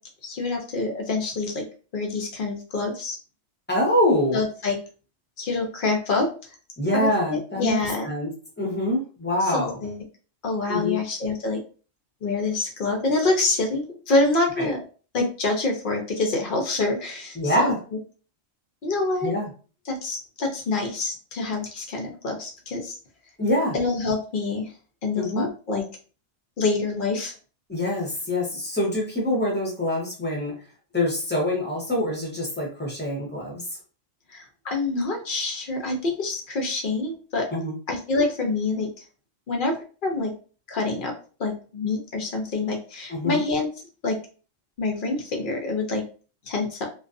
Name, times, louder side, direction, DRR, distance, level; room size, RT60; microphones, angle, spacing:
voice 1, 0.2-1.6 1.9-3.2 4.3-4.8 5.4-6.3 6.9-8.1 9.4-10.0 10.4-11.6 12.2-14.8 15.1-17.7 18.8-19.4 19.9-22.9 23.7-24.7 25.0-25.8 26.6-27.3 34.3-37.5 37.9-39.0 39.5-39.8 40.0-40.3 40.7-41.1 41.4-43.7 44.0-44.2 44.8-46.0 46.5-46.8, left 3 dB, 55° left, 2 dB, 0.6 m, -26 dB
voice 2, 3.7-4.4 6.8-7.8 8.0-8.3 8.6-9.8 10.7-11.0 14.6-14.7 17.4-17.8 19.2-19.5 23.4-23.7 25.2-25.5 27.7-30.5 30.9-33.6 37.5-37.7 43.1-43.4, left 1 dB, 10° left, -3 dB, 0.5 m, -25 dB
2.4 x 2.2 x 2.5 m, 0.37 s
omnidirectional pair, 1.4 m